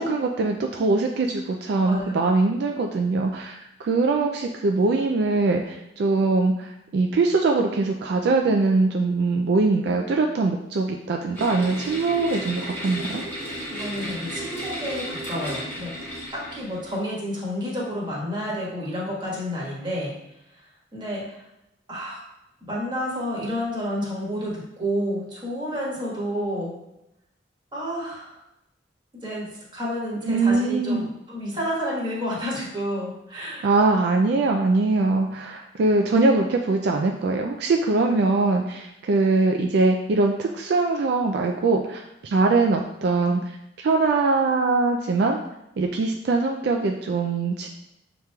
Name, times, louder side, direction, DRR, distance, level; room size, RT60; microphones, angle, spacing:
voice 1, 0.0-13.2 30.2-31.0 33.6-43.4 43.8-45.4 45.8-47.7, right 3 dB, 65° right, 2 dB, 0.3 m, -22 dB
voice 2, 1.8-2.3 13.7-15.9 16.3-20.2 20.5-20.6 20.9-21.4 21.9-22.2 22.7-26.7 27.7-28.3 29.2-33.7, equal, 25° right, -5 dB, 1.3 m, -30 dB
sound 1, 11.3-17.0, equal, 15° left, 1.2 m, -34 dB
6.5 x 3.0 x 2.3 m, 0.87 s
head